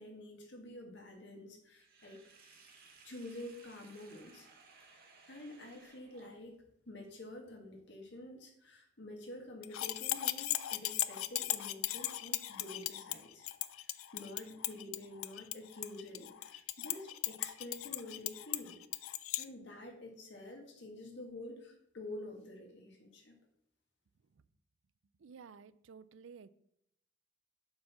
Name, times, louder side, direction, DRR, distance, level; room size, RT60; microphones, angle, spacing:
voice 1, 0.0-2.2 3.0-4.5 4.8-6.6 6.9-18.8 19.4-23.4, left 1 dB, 55° left, 2 dB, 1.7 m, -49 dB
Sink (filling or washing), 1.8-6.7, right 4 dB, 45° right, 1.4 m, -61 dB
sound 1, 9.6-19.4, left 15 dB, 85° left, 0.4 m, -37 dB
voice 2, 25.2-26.5, right 6 dB, 70° right, 16 dB, 0.4 m, -54 dB
7.5 x 4.6 x 5.7 m, 0.74 s
head